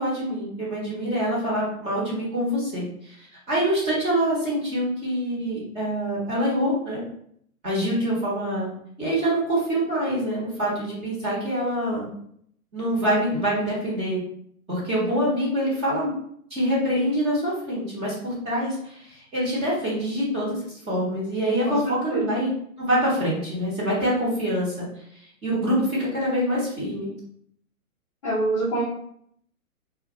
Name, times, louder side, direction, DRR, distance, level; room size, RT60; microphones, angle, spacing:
voice 1, 0.0-3.2 3.5-7.0 7.6-8.7 9.0-12.1 12.7-14.2 14.7-16.1 16.5-20.6 20.9-22.5 22.8-24.9 25.4-27.1, equal, 15° right, -7 dB, 0.9 m, -25 dB
voice 2, 21.7-22.3 28.2-28.8, right 2 dB, 25° left, -9 dB, 0.5 m, -26 dB
2.5 x 2.4 x 3.6 m, 0.67 s
hypercardioid pair, 150°, 43 cm